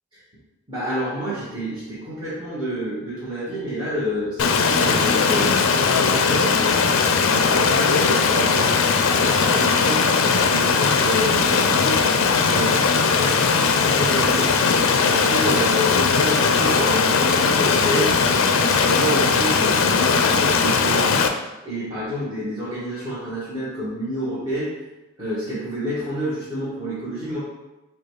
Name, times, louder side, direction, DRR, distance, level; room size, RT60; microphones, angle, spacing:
voice 1, 0.7-6.8 7.2-8.7 9.1-12.0 12.5-14.6 15.1-18.2 18.5-21.2 21.6-24.8 25.2-27.4, equal, 25° right, -12 dB, 1.2 m, -28 dB
Stream, 4.4-21.3, left 5 dB, 75° left, 0.4 m, -19 dB
4.8 x 2.3 x 4.6 m, 1.0 s
head